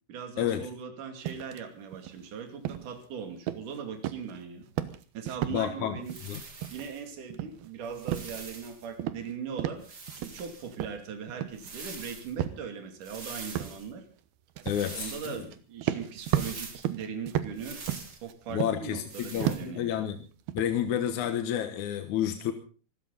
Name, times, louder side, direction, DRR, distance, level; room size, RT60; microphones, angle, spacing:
voice 1, 0.1-4.7 5.1-6.2 6.7-14.1 14.9-17.8 18.2-20.0, right 6 dB, 60° right, 5 dB, 4.1 m, -40 dB
sound 1, 1.3-1.6 1.9-2.2 2.6-3.0 3.5-4.4 4.6-5.6 6.0-6.3 6.6-7.0 7.3-8.7 9.0-9.3 9.6-10.4 10.7-11.7 12.4-12.6 13.1-13.2 13.6-13.8 14.6-14.9 15.4-15.6 15.8-19.0 19.4-19.8 20.2-21.1, right 12 dB, 85° right, 3.0 m, -34 dB
voice 2, 5.5-6.0 6.3-6.4 14.7-15.4 18.5-20.2 20.5-22.5, left 10 dB, 65° left, 7 dB, 2.3 m, -30 dB
sound 2, 6.0-7.0 7.8-8.9 9.8-10.7 11.5-12.3 13.0-13.9 14.6-15.4 16.2-16.9 17.6-18.2 19.1-19.7, right 4 dB, 30° right, 2.6 m, -44 dB
25.5 x 13.5 x 4.0 m, 0.38 s
omnidirectional pair, 4.3 m